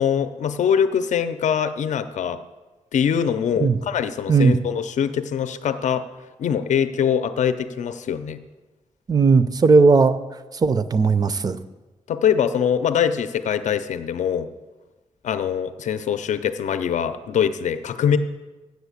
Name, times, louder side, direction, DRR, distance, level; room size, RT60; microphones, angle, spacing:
voice 1, 0.0-2.4 2.9-6.0 6.4-8.4 12.1-14.5 15.2-18.2, left 8 dB, 85° left, 10 dB, 0.5 m, -23 dB
voice 2, 9.1-10.2 10.5-11.6, right 4 dB, 35° right, 13 dB, 0.5 m, -17 dB
8.0 x 7.1 x 8.2 m, 1.1 s
wide cardioid pair, 165°, 12 cm